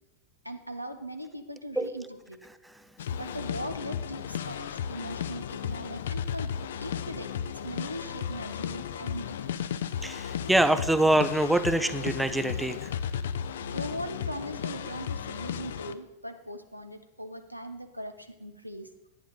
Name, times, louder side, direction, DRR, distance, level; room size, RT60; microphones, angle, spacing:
voice 1, 0.4-2.5 3.2-9.5 13.7-18.9, right 1 dB, 90° right, 8 dB, 0.8 m, -40 dB
sound 1, 3.0-15.9, left 8 dB, 60° left, 0.4 m, -34 dB
voice 2, 10.0-12.9, right 1 dB, 5° right, 12 dB, 0.5 m, -25 dB
11.0 x 9.5 x 3.9 m, 1.0 s
figure-of-eight pair, 90°, 0 cm